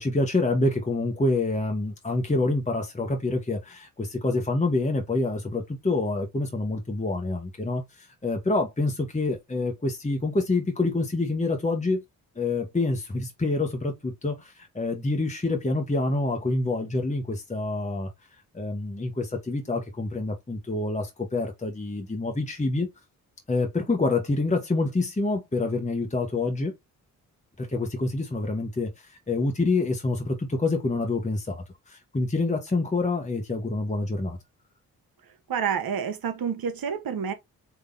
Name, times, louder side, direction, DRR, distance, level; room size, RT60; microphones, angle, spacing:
voice 1, 0.0-12.0 12.4-18.1 18.5-22.9 23.5-26.7 27.6-34.4, left 2 dB, 15° left, 1.2 m, -27 dB
voice 2, 35.5-37.3, right 7 dB, 60° right, 1.1 m, -28 dB
3.9 x 2.8 x 3.8 m
supercardioid pair, 50°, 39 cm